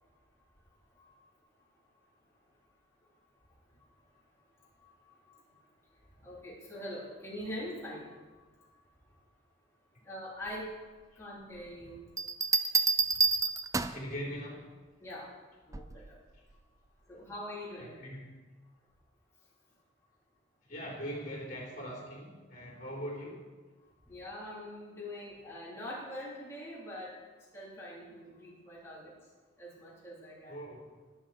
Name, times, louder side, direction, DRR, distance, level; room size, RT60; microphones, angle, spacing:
voice 1, 6.2-8.2 10.0-10.7 11.2-12.0 15.0-15.3 15.7-16.2 17.1-18.0 24.1-27.2 27.5-29.1 29.6-30.5, left 1 dB, 15° left, -7 dB, 3.8 m, -43 dB
sound 1, 12.2-14.1 15.7-16.1, right 4 dB, 15° right, 0.3 m, -28 dB
voice 2, 13.9-14.6 17.8-18.3 20.7-23.4 30.5-30.8, equal, 40° left, -3 dB, 3.9 m, -41 dB
20.5 x 7.5 x 4.5 m, 1.3 s
head